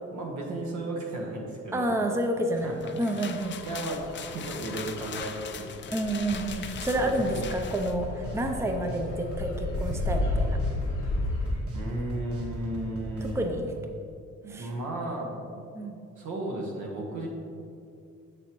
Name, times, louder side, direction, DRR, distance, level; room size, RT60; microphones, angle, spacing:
voice 1, 0.1-1.9 2.6-2.7 3.6-4.1 4.3-5.7 6.9-7.4 11.7-13.5 14.4-15.6 16.2-17.3, right 2 dB, 75° right, -1 dB, 1.5 m, -34 dB
voice 2, 1.7-3.6 5.9-10.6 13.3-13.7 14.5-14.7 15.7-16.0, right 1 dB, 10° right, 3 dB, 0.6 m, -29 dB
sound 1, 2.6-8.0, left 7 dB, 40° left, 0.5 m, -41 dB
sound 2, 3.4-11.5, left 2 dB, 85° left, 1.1 m, -33 dB
sound 3, 6.3-13.3, equal, 50° right, 1.6 m, -40 dB
7.2 x 6.8 x 3.1 m, 2.5 s
cardioid pair, 90°, 30 cm